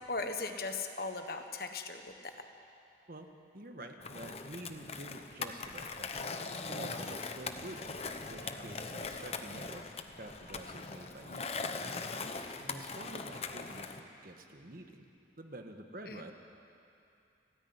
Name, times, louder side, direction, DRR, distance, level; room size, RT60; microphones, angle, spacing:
voice 1, 0.0-2.3 16.1-16.2, left 3 dB, 55° left, 6 dB, 1.4 m, -38 dB
voice 2, 3.5-6.4 6.7-8.0 8.3-9.8 10.2-11.6 12.6-15.1 15.4-16.3, right 1 dB, 50° right, 4 dB, 1.5 m, -48 dB
Skateboard, 4.0-14.0, left 4 dB, 35° left, 0.9 m, -41 dB
29.5 x 10.0 x 9.7 m, 2.6 s
head